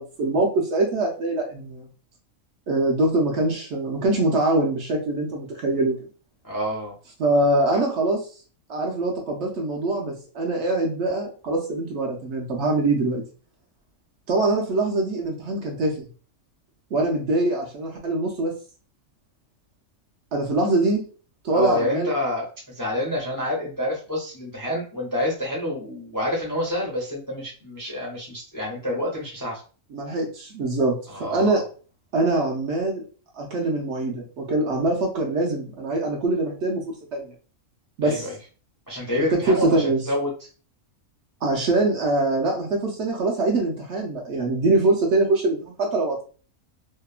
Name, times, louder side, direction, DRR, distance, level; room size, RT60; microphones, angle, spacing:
voice 1, 0.0-1.9 2.7-6.0 7.2-8.2 8.7-13.2 14.3-16.1 16.9-18.5 20.3-21.1 21.4-22.1 29.9-30.9 31.2-31.6 32.1-33.0 33.3-37.3 38.0-38.3 39.3-40.0 41.4-46.2, right 2 dB, 65° right, 0 dB, 0.8 m, -23 dB
voice 2, 6.4-6.9 7.7-7.8 21.5-29.6 31.1-31.6 38.0-38.3 38.9-40.5, left 1 dB, 25° left, -3 dB, 0.4 m, -28 dB
2.8 x 2.0 x 2.3 m, 0.38 s
omnidirectional pair, 1.5 m